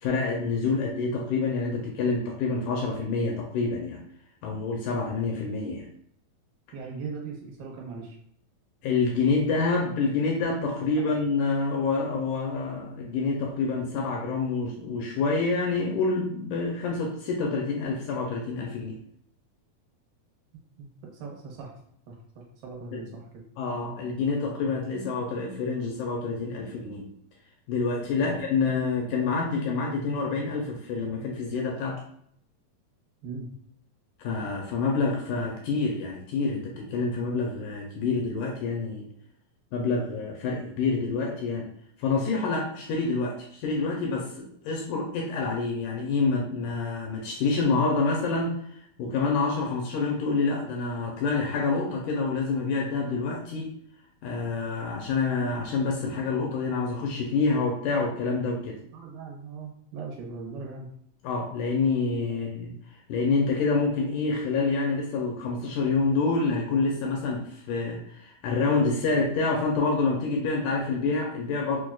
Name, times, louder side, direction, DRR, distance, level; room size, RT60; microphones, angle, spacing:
voice 1, 0.0-4.0 4.4-5.9 8.8-19.0 22.9-23.0 23.6-27.1 27.7-32.0 34.2-39.1 39.7-41.7 42.0-48.7 49.0-53.7 54.2-58.8 61.2-62.7 63.1-71.8, left 4 dB, 80° left, 0 dB, 1.9 m, -27 dB
voice 2, 6.7-8.2 10.8-11.0 20.8-21.7 22.1-23.4 28.2-28.4 33.2-33.5 58.9-60.9, right 4 dB, 80° right, -1 dB, 2.5 m, -39 dB
6.0 x 2.1 x 2.3 m, 0.68 s
omnidirectional pair, 3.9 m